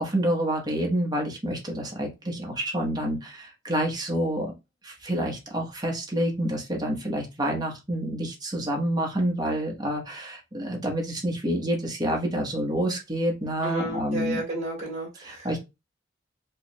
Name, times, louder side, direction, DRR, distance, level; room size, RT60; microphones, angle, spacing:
voice 1, 0.0-4.5 4.8-14.4 15.2-15.6, right 1 dB, 20° right, 0 dB, 1.1 m, -28 dB
voice 2, 13.6-15.6, right 1 dB, 35° right, -2 dB, 1.8 m, -32 dB
4.7 x 2.9 x 2.2 m, 0.24 s
head